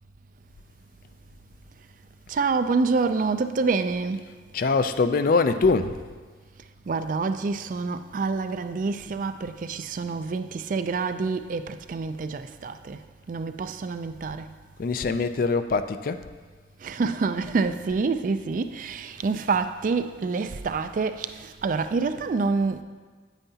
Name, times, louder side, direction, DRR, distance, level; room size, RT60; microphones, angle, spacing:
voice 1, 2.3-4.2 6.9-13.0 13.3-14.5 16.8-22.8, right 4 dB, 45° right, 0.3 m, -27 dB
voice 2, 4.5-6.0 14.8-16.3, left 4 dB, 50° left, 0.3 m, -23 dB
9.0 x 9.0 x 2.8 m
head